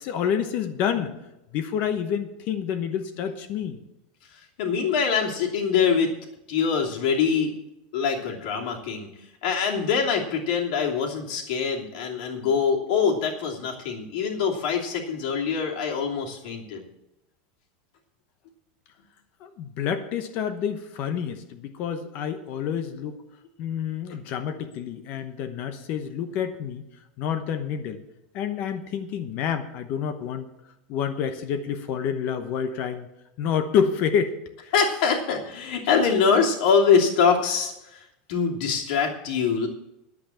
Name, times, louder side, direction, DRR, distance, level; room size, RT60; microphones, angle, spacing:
voice 1, 0.0-3.8 19.4-23.2 23.6-26.9 27.2-28.0 28.3-30.5 30.9-33.1 33.4-34.3 34.6-34.7, left 8 dB, 40° left, 8 dB, 1.0 m, -28 dB
voice 2, 4.6-6.1 6.5-7.5 7.9-9.1 9.4-16.8 34.7-38.0 38.3-39.7, left 6 dB, 60° left, 0 dB, 2.9 m, -24 dB
10.5 x 8.4 x 7.3 m, 0.87 s
supercardioid pair, 165°, 5 cm